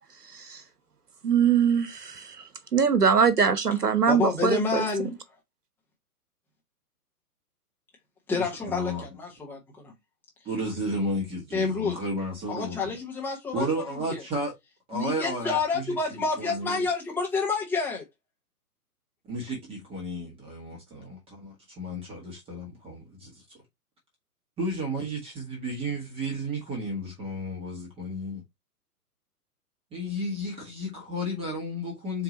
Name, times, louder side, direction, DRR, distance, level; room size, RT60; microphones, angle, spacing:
voice 1, 1.2-2.3 2.7-4.9, right 6 dB, 75° right, 1.0 m, -22 dB
voice 2, 4.1-5.1 8.3-9.9 11.5-12.0 12.5-13.7 14.1-14.2 14.9-18.0, left 4 dB, 5° left, 1.0 m, -28 dB
voice 3, 8.3-9.1 10.4-13.0 13.5-14.6 14.9-16.8 19.3-23.4 24.6-28.4 29.9-32.2, equal, 10° right, 1.3 m, -33 dB
4.5 x 2.9 x 3.9 m
figure-of-eight pair, 120°, 46 cm